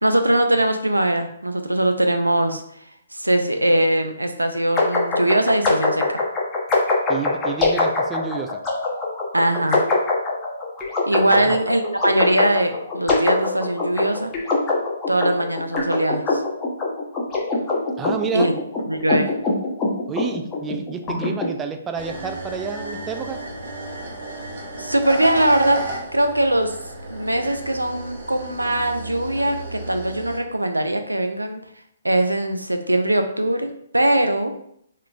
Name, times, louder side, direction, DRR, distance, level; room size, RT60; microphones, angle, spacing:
voice 1, 0.0-2.6 3.1-6.2 9.3-9.9 11.1-14.3 15.1-16.4 18.3-18.5 18.9-19.3 24.8-25.8 26.1-26.8 27.1-31.6 32.0-33.7 33.9-34.5, right 1 dB, 85° right, 7 dB, 0.4 m, -21 dB
sound 1, 4.8-21.5, left 3 dB, 15° left, 0.8 m, -23 dB
voice 2, 7.1-8.6 11.3-11.6 18.0-18.5 20.1-23.4, right 5 dB, 15° right, 6 dB, 0.3 m, -30 dB
sound 2, 21.9-30.4, right 2 dB, 55° right, 1.0 m, -33 dB
3.8 x 3.1 x 2.4 m, 0.69 s
figure-of-eight pair, 130°, 0 cm